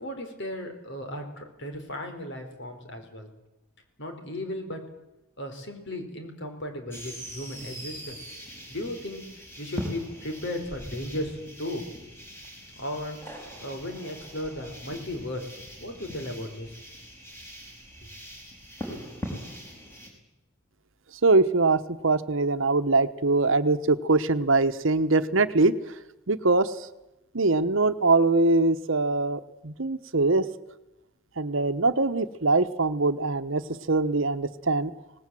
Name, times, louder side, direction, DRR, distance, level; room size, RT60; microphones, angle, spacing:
voice 1, 0.0-3.3 4.0-4.8 5.4-8.2 8.7-9.2 9.6-11.8 12.8-13.2 13.6-16.8, left 1 dB, 55° left, 5 dB, 4.4 m, -35 dB
sound 1, 6.9-20.1, equal, 10° left, 5.0 m, -41 dB
voice 2, 21.2-25.7 26.3-26.9 27.3-30.4 31.4-33.6 33.9-34.9, right 3 dB, 65° right, 11 dB, 1.1 m, -23 dB
25.0 x 19.0 x 7.7 m, 0.95 s
head